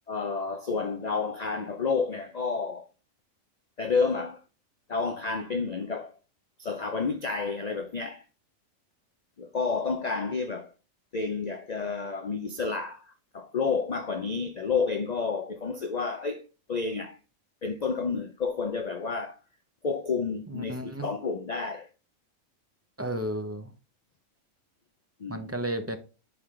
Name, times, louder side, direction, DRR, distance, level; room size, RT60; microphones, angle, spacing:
voice 1, 0.1-2.9 3.8-4.4 4.9-6.1 6.6-8.2 9.4-10.7 11.1-13.1 13.3-16.4 16.7-17.2 17.6-19.4 19.8-21.9 25.2-25.5, left 4 dB, 50° left, 0.5 m, -30 dB
voice 2, 20.5-21.1 23.0-23.7 25.3-26.0, right 1 dB, 15° right, 0.6 m, -33 dB
10.0 x 3.8 x 3.2 m
omnidirectional pair, 1.4 m